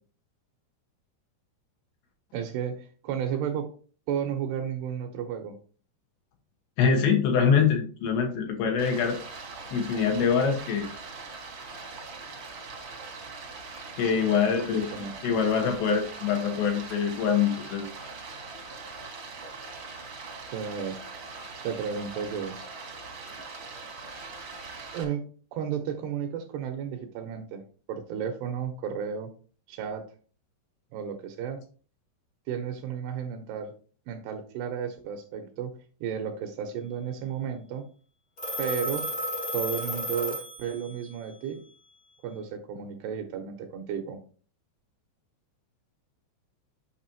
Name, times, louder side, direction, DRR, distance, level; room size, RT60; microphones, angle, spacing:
voice 1, 2.3-3.7 4.1-5.6 14.1-15.2 20.5-21.0 21.6-22.6 24.9-25.3 25.5-27.6 27.9-29.3 29.7-30.1 30.9-31.6 32.5-33.7 34.1-35.7 36.0-37.9 38.6-39.1 39.5-41.6 42.2-44.2, right 8 dB, 80° right, 5 dB, 2.7 m, -33 dB
voice 2, 6.8-9.2 9.7-10.9 13.9-14.9 15.2-17.9, left 6 dB, 75° left, 2 dB, 3.2 m, -24 dB
Stream, 8.8-25.0, right 4 dB, 55° right, 1.5 m, -42 dB
Telephone, 38.4-41.1, equal, 40° left, 1.2 m, -33 dB
8.8 x 5.9 x 2.9 m, 0.40 s
omnidirectional pair, 5.2 m